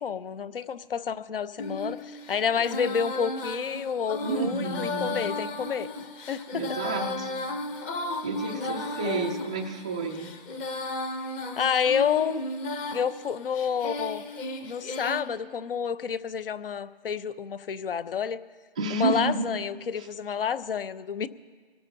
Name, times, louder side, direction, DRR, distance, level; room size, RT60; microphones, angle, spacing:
voice 1, 0.0-5.9 6.3-6.8 9.0-9.3 11.6-12.4 12.9-14.2 14.6-18.4 18.9-21.3, left 7 dB, 65° left, 15 dB, 0.9 m, -29 dB
Female singing, 1.6-15.2, left 2 dB, 15° left, 0.7 m, -35 dB
voice 2, 4.2-5.3 6.5-7.3 8.2-10.3 18.8-19.5 20.0-20.1, right 3 dB, 5° right, -1 dB, 0.4 m, -30 dB
26.0 x 18.0 x 2.8 m, 1.5 s
hypercardioid pair, 150°, 30 cm